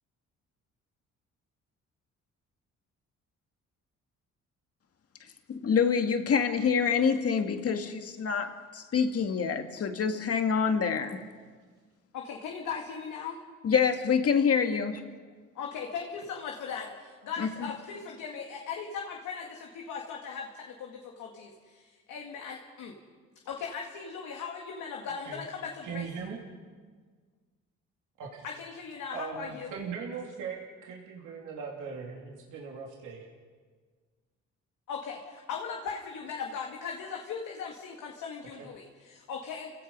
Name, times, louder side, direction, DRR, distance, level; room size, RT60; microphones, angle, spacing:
voice 1, 5.5-11.2 13.6-14.9 17.4-17.5, left 6 dB, 50° left, 6 dB, 2.0 m, -26 dB
voice 2, 12.1-13.4 15.6-22.9 23.5-26.1 28.4-29.7 34.9-39.7, left 6 dB, 80° left, 1 dB, 2.1 m, -38 dB
voice 3, 25.8-26.4 28.2-28.4 29.1-33.3 38.6-38.7, right 5 dB, 85° right, -2 dB, 2.9 m, -39 dB
29.5 x 17.0 x 5.4 m, 1.6 s
cardioid pair, 90°, 30 cm